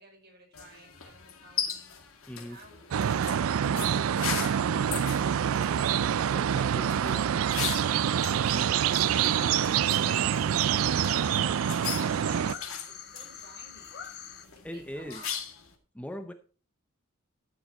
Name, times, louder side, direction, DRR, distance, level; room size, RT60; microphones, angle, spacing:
voice 1, 0.0-1.9 2.4-4.3 11.4-14.0 14.5-15.4, right 2 dB, 50° right, 5.6 m, -54 dB
sound 1, 0.5-15.7, left 8 dB, 80° left, 2.2 m, -40 dB
voice 2, 2.3-2.6 6.3-7.3 14.6-15.2 15.9-16.3, equal, 5° left, 0.7 m, -40 dB
sound 2, 2.9-12.5, right 9 dB, 80° right, 0.4 m, -26 dB
sound 3, 8.5-14.5, left 8 dB, 50° left, 1.5 m, -45 dB
13.5 x 7.0 x 4.2 m
head